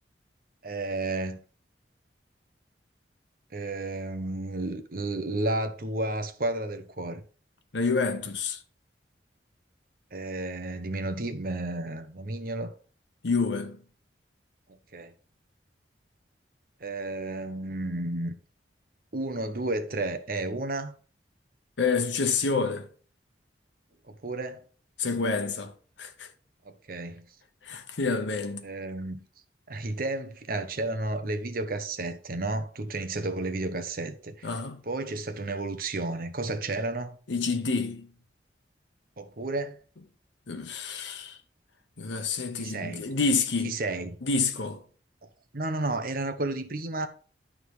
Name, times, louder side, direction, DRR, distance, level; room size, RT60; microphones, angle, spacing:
voice 1, 0.6-1.4 3.5-7.2 10.1-12.7 14.7-15.1 16.8-18.3 19.1-20.9 24.1-24.6 26.6-27.2 28.6-29.2 29.7-34.5 34.8-37.2 39.2-39.8 42.6-43.1 43.6-44.2 45.5-47.1, right 2 dB, 55° right, 0.9 m, -32 dB
voice 2, 7.7-8.6 13.2-13.8 21.8-22.9 25.0-25.7 26.0-26.3 27.6-28.7 34.4-34.8 37.3-38.1 40.5-41.4 42.0-43.8 44.2-44.8, left 4 dB, 90° left, 0.9 m, -28 dB
11.5 x 3.8 x 4.8 m
head